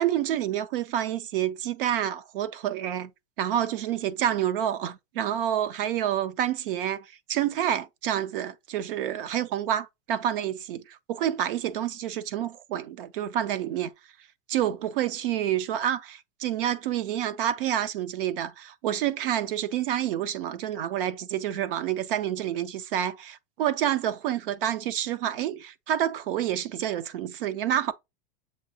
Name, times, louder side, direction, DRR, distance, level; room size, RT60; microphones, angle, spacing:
voice 1, 0.0-3.1 3.4-13.9 14.5-27.9, right 11 dB, 50° right, 0.5 m, -28 dB
7.2 x 2.7 x 2.7 m
supercardioid pair, 165°, 36 cm